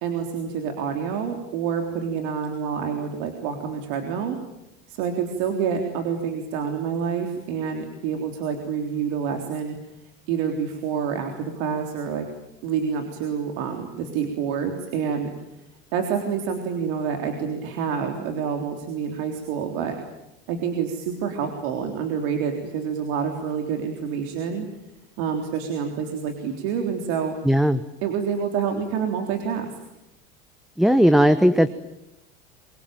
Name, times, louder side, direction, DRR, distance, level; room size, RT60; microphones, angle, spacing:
voice 1, 0.0-4.4 4.9-9.8 10.3-12.3 12.6-15.3 15.9-20.0 20.5-24.7 25.2-27.4 28.0-29.7, right 7 dB, 70° right, 4 dB, 3.7 m, -27 dB
voice 2, 27.4-27.8 30.8-31.7, equal, ahead, 13 dB, 1.0 m, -17 dB
26.0 x 23.0 x 9.1 m, 0.90 s
supercardioid pair, 105°, 31 cm